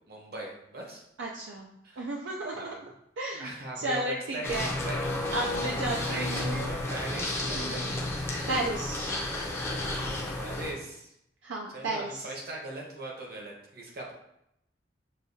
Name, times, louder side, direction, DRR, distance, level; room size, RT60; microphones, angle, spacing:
voice 1, 0.1-1.0 1.8-2.1 2.5-2.9 3.3-5.0 6.0-7.9 10.4-11.1 11.7-14.1, right 2 dB, 55° right, -1 dB, 1.0 m, -40 dB
voice 2, 1.2-1.7 2.0-2.9 3.2-4.7 5.3-6.7 7.6-7.8 8.5-9.1 11.4-12.2, right 2 dB, 80° right, -1 dB, 0.4 m, -33 dB
sound 1, 4.4-10.7, left 1 dB, 15° left, 0.5 m, -32 dB
6.5 x 2.3 x 2.7 m, 0.79 s
head